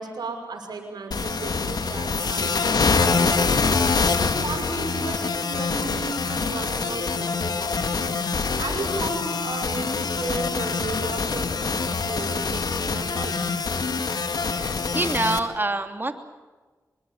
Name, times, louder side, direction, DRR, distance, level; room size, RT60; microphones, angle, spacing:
voice 1, 0.0-3.6 4.1-7.8 8.5-13.5, right 3 dB, 85° right, 1 dB, 6.0 m, -34 dB
sound 1, 1.1-15.4, left 4 dB, 75° left, 2.0 m, -25 dB
voice 2, 14.5-16.1, right 2 dB, 30° right, 7 dB, 2.9 m, -26 dB
24.5 x 22.5 x 7.3 m, 1.3 s
cardioid pair, 60°, 7 cm